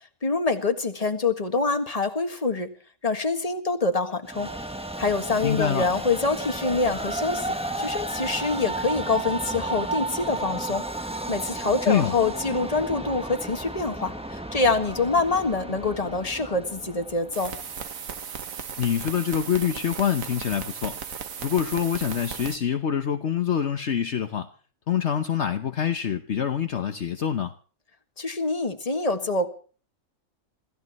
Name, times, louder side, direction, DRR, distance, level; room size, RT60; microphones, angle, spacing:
voice 1, 0.2-2.7 3.0-4.5 5.0-17.5 28.2-29.5, left 3 dB, 30° left, 1.8 m, -26 dB
Train, 4.3-17.7, right 2 dB, 5° right, 1.2 m, -33 dB
voice 2, 5.4-5.9 11.9-12.1 18.8-21.0 21.4-24.5 24.9-27.5, left 8 dB, 60° left, 1.2 m, -25 dB
sound 1, 17.3-22.6, right 7 dB, 85° right, 1.6 m, -36 dB
27.0 x 15.0 x 3.1 m
omnidirectional pair, 1.4 m